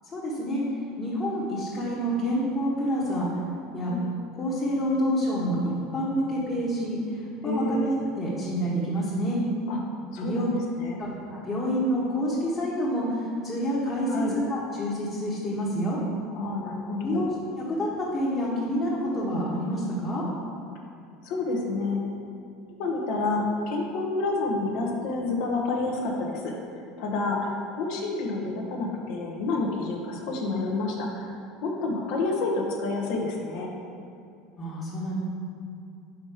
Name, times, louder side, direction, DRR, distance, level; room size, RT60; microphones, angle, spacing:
voice 1, 0.1-0.6 1.0-3.3 3.7-3.9 4.4-9.4 10.2-10.5 11.0-16.0 17.0-17.3 17.7-20.2 34.6-35.1, equal, 35° left, -8 dB, 1.4 m, -28 dB
voice 2, 7.4-8.0 9.7-9.8 10.1-10.5 10.8-11.0 14.1-14.3 16.3-17.2 21.2-22.0 22.8-26.5 27.0-31.3 31.6-33.7, left 3 dB, 65° left, 0 dB, 1.0 m, -29 dB
5.2 x 4.1 x 4.9 m, 2.5 s
hypercardioid pair, 75°, 0 cm